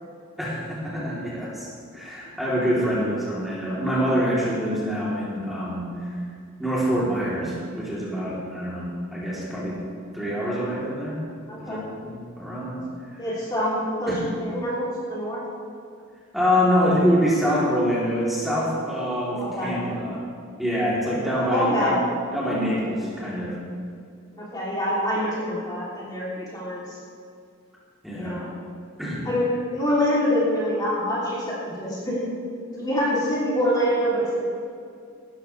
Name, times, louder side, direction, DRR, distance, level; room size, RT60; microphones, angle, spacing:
voice 1, 0.4-1.7 1.9-6.1 6.6-9.8 10.1-11.2 11.6-12.8 13.1-13.3 14.1-14.3 16.3-20.2 20.6-21.9 22.3-23.6 28.0-28.4 29.0-29.3, equal, ahead, -9 dB, 3.6 m, -25 dB
voice 2, 11.5-11.9 13.2-15.4 19.3-19.7 21.4-22.0 24.4-27.0 28.1-28.5 29.3-32.2 32.7-34.4, equal, 20° left, -8 dB, 3.4 m, -25 dB
18.0 x 13.5 x 3.5 m, 2.3 s
head